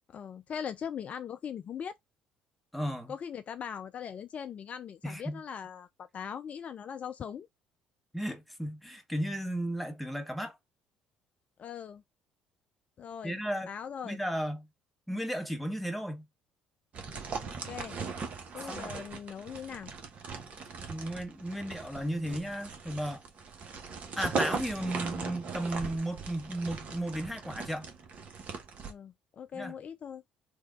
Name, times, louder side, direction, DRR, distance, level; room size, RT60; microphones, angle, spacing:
voice 1, 0.1-1.9 3.1-7.5 11.6-12.0 13.0-13.4 13.7-14.2 17.4-18.0 18.5-19.9 28.8-30.2, left 8 dB, 45° left, 0.3 m, -40 dB
voice 2, 2.7-3.1 5.0-5.4 8.1-10.6 13.2-13.7 14.0-14.7 15.1-16.3 18.6-18.9 20.9-23.2 24.2-27.9 29.5-29.7, equal, ahead, 1.0 m, -34 dB
sound 1, 16.9-28.9, right 5 dB, 45° right, 1.0 m, -39 dB
3.3 x 2.3 x 3.7 m
hypercardioid pair, 55°, 3 cm